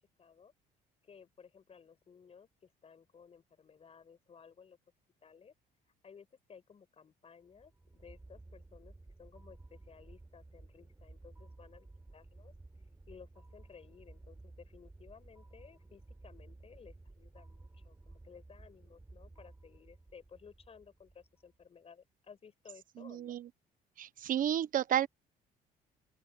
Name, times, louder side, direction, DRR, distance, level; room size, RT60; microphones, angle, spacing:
voice 1, 0.2-0.5 1.0-4.8 5.2-5.5 6.0-8.9 9.2-12.5 13.1-23.4, left 6 dB, 35° left, 7.4 m, -57 dB
sound 1, 7.5-21.7, right 2 dB, 15° right, 4.0 m, -55 dB
voice 2, 23.0-23.5 24.0-25.1, right 10 dB, 55° right, 1.1 m, -32 dB
open air
cardioid pair, 110°, 17 cm